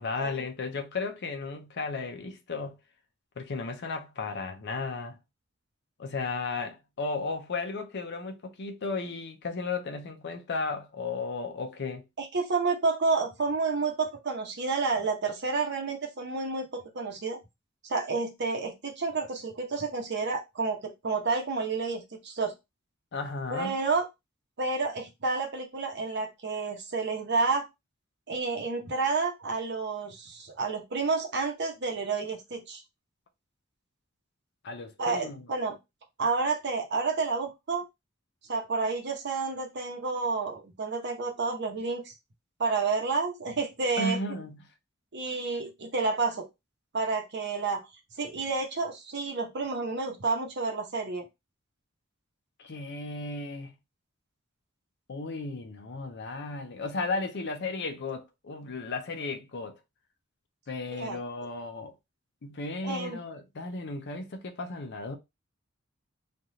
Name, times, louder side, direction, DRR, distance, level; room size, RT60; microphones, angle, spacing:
voice 1, 0.0-2.8 3.4-5.2 6.0-12.0 23.1-23.7 34.6-35.5 44.0-44.6 52.6-53.7 55.1-59.7 60.7-61.9 62.4-65.2, left 3 dB, 55° left, 0.6 m, -34 dB
voice 2, 12.2-17.4 17.8-22.5 23.5-24.1 24.6-27.7 28.3-32.8 35.0-35.8 36.2-37.8 38.5-42.1 42.6-44.2 45.1-46.4 46.9-47.8 48.2-51.3 60.9-61.2 62.8-63.2, right 4 dB, 55° right, 0.9 m, -30 dB
3.3 x 2.4 x 2.7 m
head